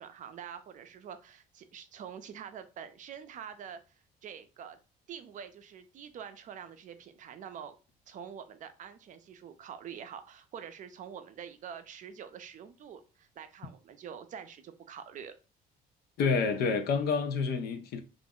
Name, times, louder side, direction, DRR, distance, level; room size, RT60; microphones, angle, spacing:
voice 1, 0.0-4.8 5.1-7.7 8.1-15.4, right 8 dB, 50° right, 0.4 m, -46 dB
voice 2, 16.2-18.0, left 5 dB, 65° left, 0.6 m, -28 dB
2.5 x 2.0 x 3.5 m
cardioid pair, 110°, 17 cm